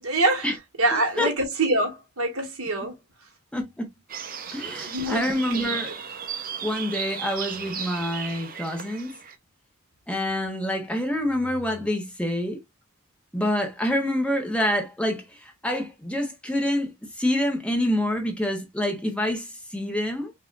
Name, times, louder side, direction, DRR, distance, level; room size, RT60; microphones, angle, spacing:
voice 1, 0.0-0.5 0.8-3.0 4.9-5.3 5.5-5.9, right 2 dB, 80° right, 1.7 m, -25 dB
voice 2, 3.5-3.9 4.5-6.0 6.6-9.2 10.1-12.6 13.3-20.3, left 1 dB, 5° left, 1.1 m, -27 dB
sound 1, 4.1-9.4, right 7 dB, 40° right, 0.7 m, -35 dB
5.5 x 2.7 x 2.5 m
head